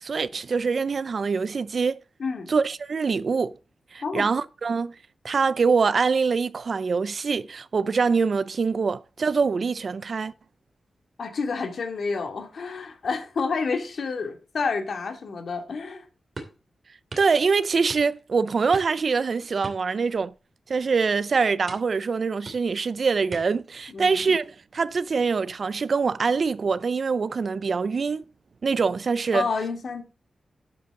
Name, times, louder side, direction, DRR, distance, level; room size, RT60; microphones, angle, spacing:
voice 1, 0.0-2.0 2.5-3.5 3.9-4.9 5.2-10.3 17.2-20.3 20.7-28.2 28.6-29.4, right 5 dB, 45° right, 0.5 m, -24 dB
voice 2, 2.2-2.5 4.0-4.3 11.2-16.0 23.9-24.3 29.3-30.0, left 4 dB, 60° left, 2.4 m, -29 dB
sound 1, 16.4-16.6 17.1-17.3 17.9-18.3 18.7-19.1 19.6-20.4 20.7-21.0 21.7-22.0 22.4-22.8 23.3-23.7 24.2-24.5, right 3 dB, 30° right, 2.6 m, -41 dB
11.5 x 8.1 x 3.8 m
wide cardioid pair, 160°, 0 cm